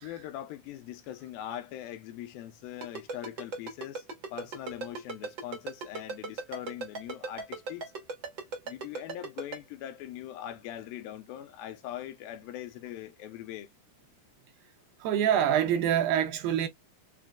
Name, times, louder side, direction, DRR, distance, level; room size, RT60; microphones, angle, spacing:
voice 1, 0.0-4.1 4.3-7.9 8.7-13.7, left 12 dB, 80° left, 2.4 m, -41 dB
Ringtone, 2.8-9.6, right 3 dB, 65° right, 1.1 m, -36 dB
voice 2, 15.0-16.7, right 9 dB, 80° right, 2.2 m, -25 dB
5.9 x 2.3 x 2.3 m
omnidirectional pair, 4.4 m